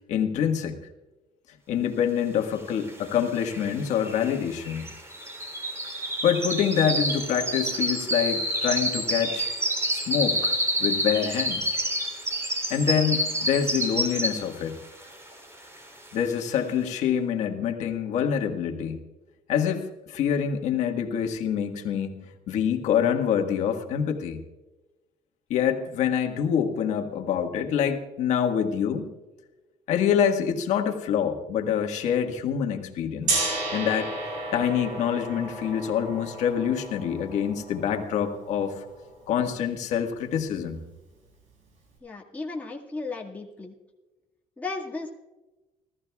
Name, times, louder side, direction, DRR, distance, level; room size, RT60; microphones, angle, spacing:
voice 1, 0.1-0.8 1.7-4.9 6.2-9.5 9.9-11.7 12.7-14.8 16.1-19.1 19.5-22.2 22.5-24.4 25.5-29.0 29.9-34.1 34.5-38.8 39.3-40.8, left 8 dB, 70° left, 4 dB, 1.6 m, -26 dB
sound 1, 2.9-3.0 3.2-14.6 15.0-15.3 15.8-15.9, right 1 dB, 20° right, 3.3 m, -28 dB
Gong, 33.3-39.2, right 2 dB, 75° right, 5.9 m, -33 dB
voice 2, 42.0-43.7 44.6-45.1, left 3 dB, 10° left, -1 dB, 1.9 m, -35 dB
29.5 x 14.0 x 2.4 m, 1.1 s
cardioid pair, 95°, 12 cm